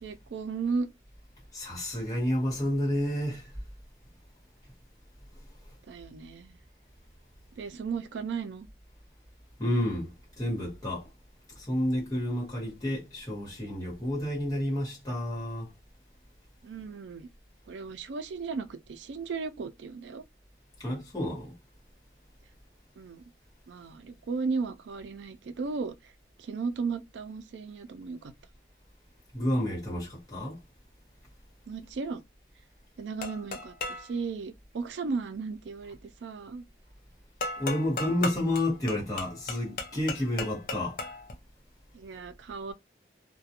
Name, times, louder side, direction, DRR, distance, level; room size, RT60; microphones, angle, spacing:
voice 1, 0.0-0.9 5.9-6.6 7.6-8.7 16.6-17.3 17.7-20.2 23.0-23.2 23.7-26.1 26.4-28.3 31.7-32.2 33.0-36.6 41.9-42.7, right 4 dB, 85° right, 0.4 m, -35 dB
voice 2, 1.5-3.6 9.6-11.1 11.5-15.7 20.8-21.5 29.3-30.6 37.6-41.0, left 1 dB, 20° left, 1.3 m, -30 dB
sound 1, 33.2-34.1 37.4-41.3, left 3 dB, 50° left, 0.5 m, -36 dB
2.4 x 2.2 x 2.8 m
head